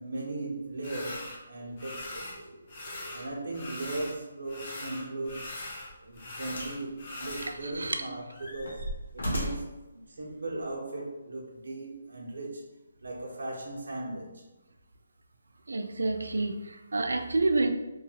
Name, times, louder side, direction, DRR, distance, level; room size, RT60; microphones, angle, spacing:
voice 1, 0.0-2.3 3.1-5.5 6.0-8.9 9.1-12.7 13.0-14.4, right 2 dB, 70° right, 0.8 m, -38 dB
sound 1, 0.8-1.4 1.8-2.4 2.7-4.2 4.4-7.5, left 2 dB, 35° left, 0.6 m, -41 dB
sound 2, 5.3-5.5 6.5-6.8 7.2-7.9 8.3-9.8 10.7-10.8, equal, 80° left, 1.1 m, -36 dB
voice 2, 7.6-8.0 9.3-9.4 15.7-17.7, right 2 dB, 85° right, 0.4 m, -29 dB
2.8 x 2.3 x 2.7 m
hypercardioid pair, 170°, 0 cm